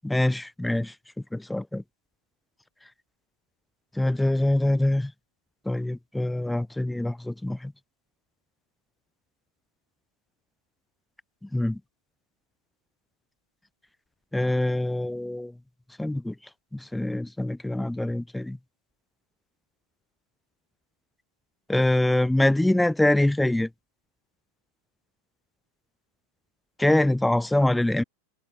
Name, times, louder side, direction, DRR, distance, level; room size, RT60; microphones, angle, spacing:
voice 1, 0.0-0.9 1.3-1.8 4.0-5.1 5.7-7.7 11.5-11.8 14.3-15.5 16.0-16.3 16.7-18.6 21.7-23.7 26.8-28.0, left 1 dB, 5° left, 0.7 m, -24 dB
figure-of-eight pair, 90°, 0 cm